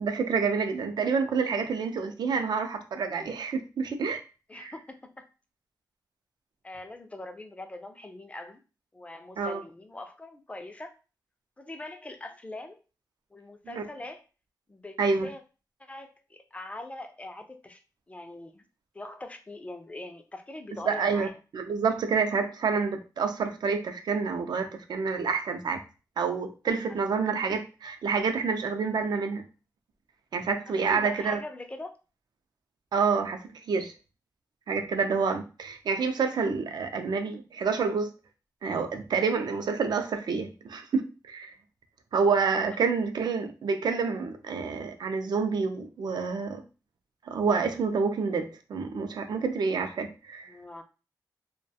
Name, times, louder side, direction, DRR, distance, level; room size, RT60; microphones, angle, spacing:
voice 1, 0.0-4.2 4.6-4.7 9.4-9.6 13.7-13.8 15.0-15.3 20.9-21.3 21.5-25.8 26.2-29.4 30.3-31.4 32.9-33.9 34.7-38.1 38.6-41.5 42.1-46.6 47.3-50.5, right 5 dB, 75° right, 6 dB, 0.4 m, -28 dB
voice 2, 4.5-5.2 6.6-8.6 8.9-11.0 11.6-12.8 13.3-14.2 14.7-15.4 15.8-17.8 18.1-18.7 18.9-21.4 26.9-27.0 30.7-32.0 42.7-42.8 50.5-50.8, left 2 dB, 20° left, 6 dB, 0.3 m, -42 dB
2.3 x 2.2 x 2.7 m, 0.33 s
wide cardioid pair, 110°, 7 cm